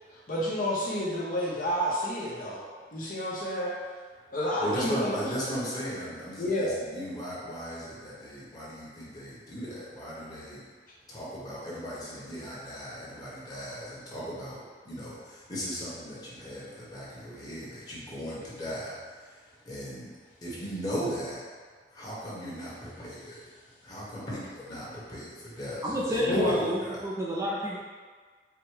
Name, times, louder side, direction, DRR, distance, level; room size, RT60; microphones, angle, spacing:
voice 1, 0.1-2.6 2.9-3.7 4.3-5.2 6.4-6.8 26.3-26.6, equal, 50° left, -6 dB, 1.0 m, -29 dB
voice 2, 4.6-10.6 11.1-20.1 20.4-21.4 21.9-23.5 23.8-27.0, equal, 20° left, -8 dB, 1.3 m, -37 dB
voice 3, 25.8-27.8, equal, 15° right, -6 dB, 0.5 m, -30 dB
4.8 x 2.2 x 4.7 m, 1.5 s
head